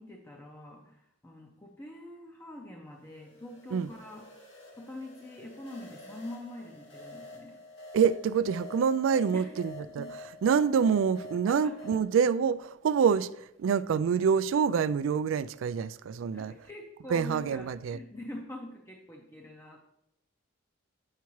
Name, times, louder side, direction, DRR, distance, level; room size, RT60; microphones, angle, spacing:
voice 1, 0.0-4.4 4.7-7.6 9.3-9.7 10.0-10.1 11.5-11.9 14.8-14.9 15.8-15.9 16.3-19.8, left 1 dB, 15° left, 0.6 m, -45 dB
sound 1, 3.0-12.0, left 2 dB, 70° left, 1.9 m, -47 dB
voice 2, 7.9-10.1 10.4-16.5 17.1-18.0, right 6 dB, 80° right, 0.3 m, -26 dB
8.3 x 5.8 x 3.1 m
head